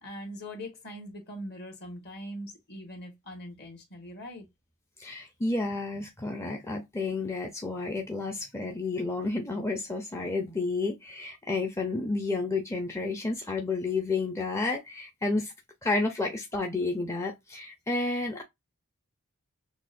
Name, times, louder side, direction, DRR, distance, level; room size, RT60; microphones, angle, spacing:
voice 1, 0.0-4.5, equal, 50° left, 1.6 m, -41 dB
voice 2, 5.0-15.5 15.8-18.4, left 3 dB, 15° left, 0.5 m, -31 dB
5.9 x 2.2 x 2.5 m
head